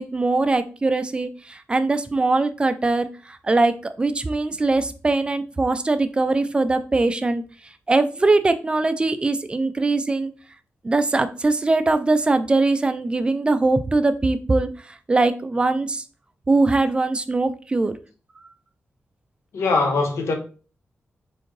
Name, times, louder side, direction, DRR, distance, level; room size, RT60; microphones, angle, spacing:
voice 1, 0.0-7.4 7.9-10.3 10.8-14.7 15.1-16.0 16.5-17.9, right 3 dB, 20° right, 0.3 m, -21 dB
voice 2, 19.5-20.3, left 3 dB, 85° left, 0.9 m, -21 dB
4.4 x 3.6 x 3.1 m
wide cardioid pair, 155°, 5 cm